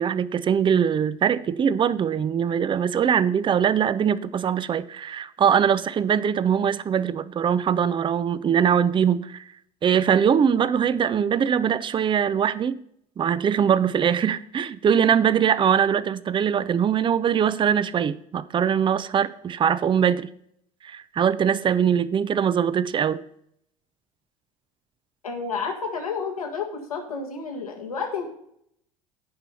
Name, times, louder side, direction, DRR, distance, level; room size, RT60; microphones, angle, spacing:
voice 1, 0.0-9.4 9.8-12.8 13.2-20.3 20.8-23.2, right 8 dB, 25° right, 0.5 m, -22 dB
voice 2, 25.2-28.3, left 5 dB, 85° left, 1.8 m, -30 dB
16.0 x 5.4 x 4.2 m
figure-of-eight pair, 65°, 18 cm